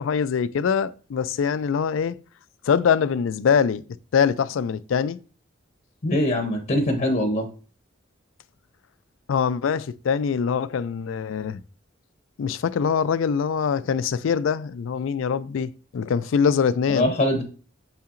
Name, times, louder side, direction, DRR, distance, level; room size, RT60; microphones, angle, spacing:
voice 1, 0.0-2.2 2.6-3.8 4.1-5.2 9.3-11.6 12.4-17.1, left 6 dB, 70° left, 0.4 m, -23 dB
voice 2, 6.0-7.5 16.9-17.4, left 1 dB, 45° left, 0.8 m, -22 dB
6.5 x 5.7 x 2.5 m
head